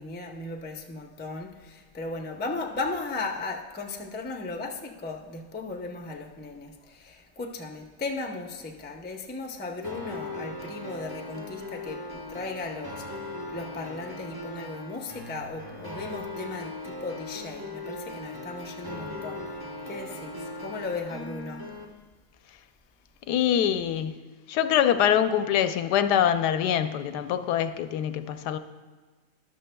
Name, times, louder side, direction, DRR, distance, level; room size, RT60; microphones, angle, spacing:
voice 1, 0.0-19.4 19.9-21.6, left 3 dB, 15° left, 3 dB, 0.3 m, -36 dB
sound 1, 9.8-21.9, left 1 dB, 20° right, 0.8 m, -39 dB
voice 2, 23.3-24.1 24.5-28.6, left 9 dB, 85° left, 10 dB, 1.2 m, -24 dB
12.5 x 12.0 x 2.2 m, 1.4 s
omnidirectional pair, 1.7 m